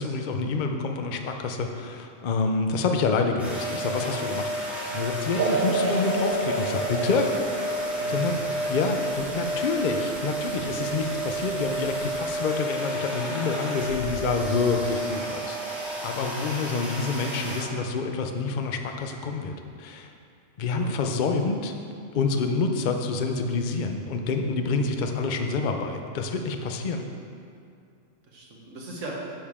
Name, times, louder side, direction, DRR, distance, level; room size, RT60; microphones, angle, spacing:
voice 1, 0.0-4.5 4.9-7.3 8.1-8.3 8.7-20.1 20.6-21.7 22.1-27.1, left 4 dB, 50° left, 4 dB, 0.7 m, -27 dB
sound 1, 3.4-17.6, right 1 dB, ahead, 1.9 m, -31 dB
voice 2, 4.8-5.8 7.9-8.6 20.7-20.9 28.3-29.3, right 2 dB, 90° right, -2 dB, 1.7 m, -40 dB
sound 2, 5.4-12.4, right 3 dB, 55° right, 0.7 m, -32 dB
10.5 x 6.7 x 3.6 m, 2.5 s
omnidirectional pair, 1.3 m